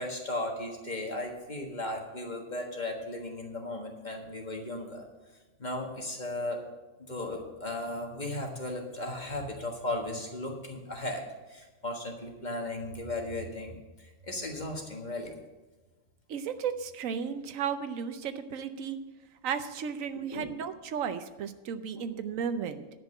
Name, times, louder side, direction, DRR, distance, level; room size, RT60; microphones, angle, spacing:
voice 1, 0.0-5.0 5.6-6.6 7.0-15.4 20.3-20.5 21.9-22.0, left 1 dB, 35° left, 1 dB, 1.6 m, -36 dB
voice 2, 16.3-19.0 19.4-22.8, right 7 dB, 85° right, 10 dB, 1.1 m, -34 dB
10.5 x 6.0 x 7.6 m, 1.2 s
omnidirectional pair, 1.4 m